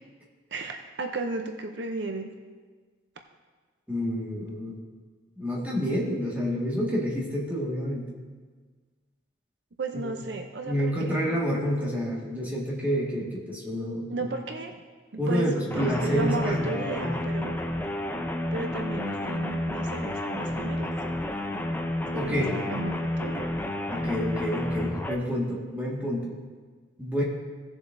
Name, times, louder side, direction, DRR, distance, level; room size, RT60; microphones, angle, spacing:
voice 1, 0.5-2.3 9.8-11.2 14.1-14.8 15.1-17.6 18.5-20.9 22.1-23.5, right 3 dB, 65° right, 4 dB, 0.6 m, -34 dB
voice 2, 3.9-4.7 5.4-8.1 9.9-10.1 10.6-14.3 15.2-17.2 22.1-22.6 23.9-26.4 27.0-27.2, equal, 10° right, -5 dB, 1.7 m, -29 dB
sound 1, 15.7-25.1, left 1 dB, 10° left, 0.5 m, -30 dB
17.0 x 7.1 x 2.6 m, 1.5 s
head